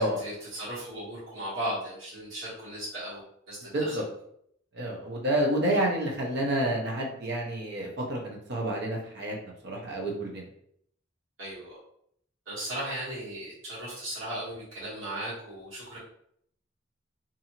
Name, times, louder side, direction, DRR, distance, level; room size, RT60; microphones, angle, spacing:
voice 1, 0.0-3.2 3.5-4.0 11.4-11.8 12.5-16.0, right 1 dB, 80° right, -11 dB, 1.4 m, -36 dB
voice 2, 3.6-4.0 4.7-10.4, right 1 dB, 60° right, -1 dB, 0.8 m, -29 dB
2.6 x 2.6 x 2.8 m, 0.70 s
head